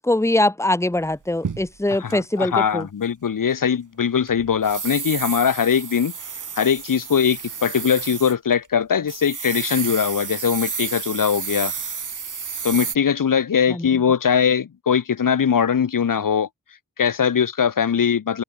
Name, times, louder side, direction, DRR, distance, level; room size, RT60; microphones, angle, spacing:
voice 1, 0.0-2.9 13.7-13.9, left 1 dB, 10° left, 1.8 m, -22 dB
sound 1, 1.1-2.1 4.3-8.3 8.7-8.8 9.1-13.0, right 6 dB, 65° right, 4.6 m, -31 dB
voice 2, 2.0-6.1 6.6-11.7 12.6-16.5 17.0-18.4, left 7 dB, 75° left, 2.1 m, -21 dB
wide cardioid pair, 85°, 33 cm